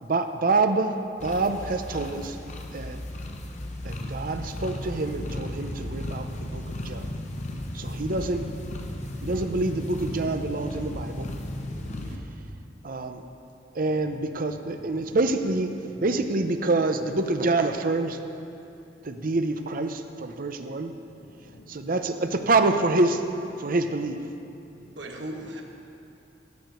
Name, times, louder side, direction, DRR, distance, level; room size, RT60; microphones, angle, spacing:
voice 1, 0.0-2.4 2.7-3.0 3.8-6.3 6.5-7.1 7.7-8.4 9.2-11.3 12.8-13.2 13.8-18.2 19.0-20.9 21.7-23.2 23.6-24.2, right 2 dB, 50° right, 7 dB, 0.7 m, -26 dB
sound 1, 1.2-12.2, left 1 dB, 40° left, 1.0 m, -35 dB
voice 2, 6.4-7.0 8.6-9.1 9.8-9.9 13.8-15.2 15.7-16.1 17.7-17.9 21.2-21.7 24.8-25.0 25.4-25.5, left 1 dB, 85° left, 3 dB, 1.2 m, -51 dB
voice 3, 11.7-12.4 24.8-25.6, right 1 dB, 85° right, 1 dB, 1.5 m, -40 dB
14.5 x 5.0 x 9.2 m, 2.7 s
head